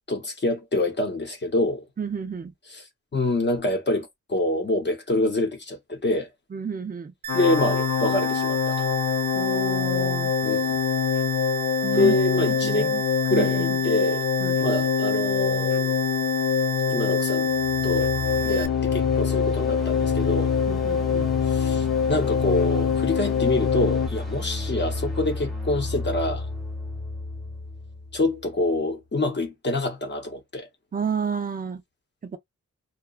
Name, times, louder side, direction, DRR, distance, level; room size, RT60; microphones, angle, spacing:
voice 1, 0.1-1.8 3.1-6.3 7.3-8.9 10.4-10.8 11.9-13.0 13.3-14.2 14.6-15.9 16.9-17.5 17.8-18.1 18.4-20.5 21.5-26.5 28.1-30.7, left 2 dB, 35° left, 0.9 m, -26 dB
voice 2, 2.0-2.5 6.5-7.1 9.3-10.3 11.8-13.0 13.3-13.8 14.4-14.6 20.7-21.3 30.9-31.8 32.2-32.4, right 6 dB, 30° right, 0.4 m, -31 dB
sound 1, 7.2-18.7, right 6 dB, 75° right, 0.6 m, -32 dB
sound 2, 7.3-24.1, left 8 dB, 70° left, 0.5 m, -24 dB
sound 3, 17.5-28.5, left 2 dB, ahead, 0.9 m, -31 dB
2.8 x 2.3 x 2.3 m
wide cardioid pair, 145°, 30 cm